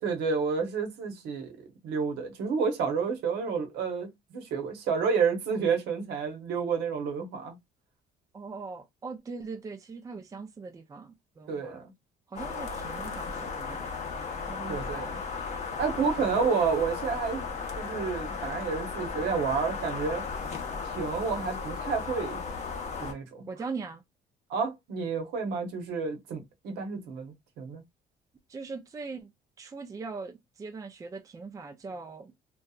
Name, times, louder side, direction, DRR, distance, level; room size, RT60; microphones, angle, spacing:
voice 1, 0.0-1.5 1.8-7.6 11.5-11.9 14.7-15.0 15.8-17.5 17.7-20.2 20.8-22.4 23.0-23.5 24.5-27.8, right 5 dB, 80° right, 0.9 m, -30 dB
voice 2, 8.3-11.8 12.3-13.9 14.5-15.1 16.0-16.4 23.4-24.0 28.5-29.3 29.6-32.3, right 4 dB, 20° right, 0.4 m, -41 dB
sound 1, 12.4-23.1, left 5 dB, 45° left, 0.7 m, -35 dB
2.7 x 2.3 x 2.3 m
cardioid pair, 110°, 17 cm